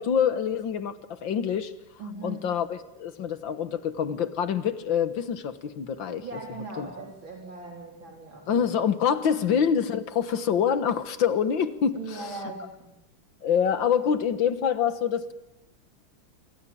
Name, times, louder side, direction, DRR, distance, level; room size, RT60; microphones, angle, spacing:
voice 1, 0.0-1.7 2.2-6.2 6.8-6.9 8.5-12.4 13.4-15.3, left 7 dB, 70° left, 12 dB, 2.0 m, -26 dB
voice 2, 2.0-2.5 6.2-8.7 9.3-9.4 11.9-12.9, right 3 dB, 70° right, 0 dB, 4.8 m, -39 dB
27.0 x 23.5 x 8.6 m, 0.88 s
omnidirectional pair, 2.2 m